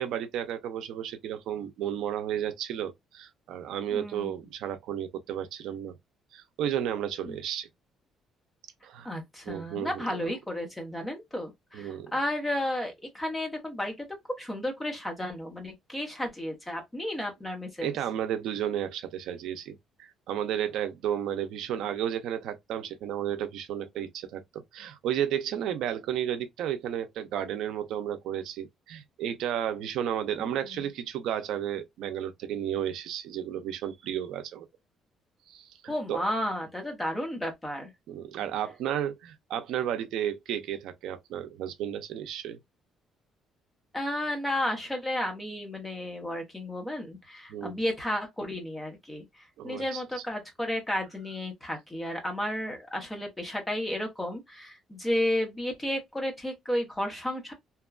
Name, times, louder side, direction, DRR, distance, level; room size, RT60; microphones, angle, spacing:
voice 1, 0.0-5.9 6.3-7.7 8.8-9.1 9.5-10.2 11.7-12.1 17.8-34.7 35.5-36.2 38.1-42.6 47.5-47.7 49.6-50.0, right 10 dB, 70° right, 0.4 m, -33 dB
voice 2, 3.9-4.3 7.3-7.4 9.0-13.9 14.4-18.0 30.4-30.5 35.9-37.9 43.9-57.5, left 1 dB, 10° left, 0.8 m, -33 dB
2.9 x 2.2 x 2.3 m
cardioid pair, 165°, 0 cm